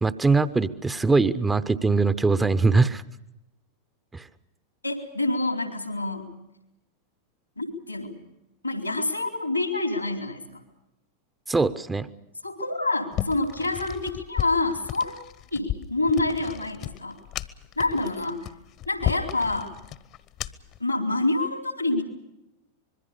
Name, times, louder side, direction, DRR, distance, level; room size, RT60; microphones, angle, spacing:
voice 1, 0.0-3.0 4.1-4.2 11.5-12.1, right 3 dB, 10° right, 13 dB, 0.9 m, -22 dB
voice 2, 4.8-6.3 7.6-8.1 8.6-10.6 12.4-15.1 15.5-17.2 17.8-18.5 18.9-19.7 20.8-22.0, left 2 dB, 85° left, 6 dB, 3.8 m, -27 dB
sound 1, 13.1-20.8, left 13 dB, 40° left, 1.2 m, -34 dB
25.5 x 22.0 x 6.9 m, 0.92 s
figure-of-eight pair, 90°, 0 cm